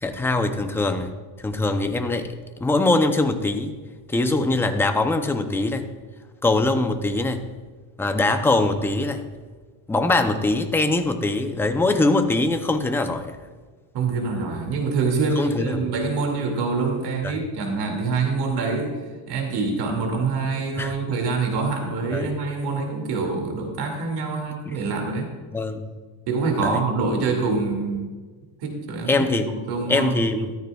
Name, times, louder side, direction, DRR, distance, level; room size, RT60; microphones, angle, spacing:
voice 1, 0.0-1.1 1.4-2.3 2.6-3.7 4.1-5.9 6.4-7.4 8.0-9.2 9.9-13.4 15.4-15.9 17.2-17.4 20.8-20.9 22.1-22.3 24.6-24.8 25.5-25.9 26.6-26.8 29.1-29.5 29.9-30.6, left 2 dB, 5° left, 7 dB, 0.5 m, -22 dB
voice 2, 13.9-19.0 19.3-25.3 26.3-28.1 28.6-30.1, right 4 dB, 65° right, 2 dB, 2.3 m, -25 dB
13.5 x 13.5 x 2.3 m, 1.4 s
cardioid pair, 150°, 44 cm